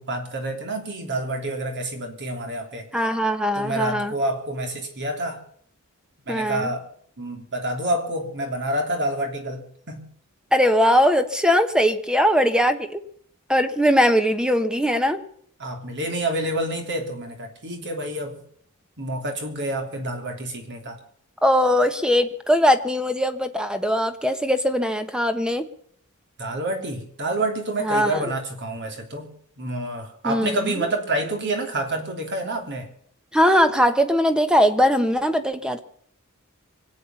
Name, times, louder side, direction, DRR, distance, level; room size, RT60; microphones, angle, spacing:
voice 1, 0.0-2.9 3.5-5.4 6.3-6.9 7.2-10.1 15.6-18.4 19.0-21.0 26.4-32.9, right 1 dB, 55° right, 4 dB, 3.2 m, -28 dB
voice 2, 2.9-4.1 6.3-6.7 10.5-13.0 13.5-15.2 21.4-25.7 27.8-28.3 30.2-30.6 33.3-35.8, equal, 5° right, 9 dB, 1.1 m, -20 dB
24.5 x 8.7 x 5.7 m, 0.63 s
head